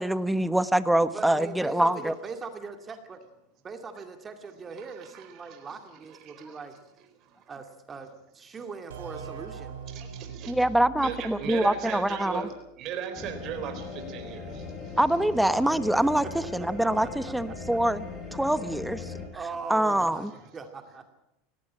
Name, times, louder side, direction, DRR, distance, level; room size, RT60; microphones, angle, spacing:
voice 1, 0.0-2.1 10.5-12.4 15.0-16.3 16.5-18.0 18.3-19.1 19.7-20.3, right 1 dB, 5° right, 14 dB, 1.1 m, -24 dB
voice 2, 1.1-3.2 3.6-6.7 7.5-9.8 15.9-16.1 16.8-17.3 18.3-18.5 19.3-20.3 20.5-21.1, right 5 dB, 25° right, 6 dB, 2.3 m, -40 dB
voice 3, 4.7-5.7 6.1-6.6 9.9-10.6 11.0-15.0, right 8 dB, 50° right, 6 dB, 4.0 m, -38 dB
sound 1, 8.9-12.5, right 7 dB, 85° right, 3.6 m, -43 dB
sound 2, 13.2-19.3, left 4 dB, 25° left, 7.2 m, -39 dB
18.0 x 17.5 x 8.7 m, 0.87 s
supercardioid pair, 110°, 0 cm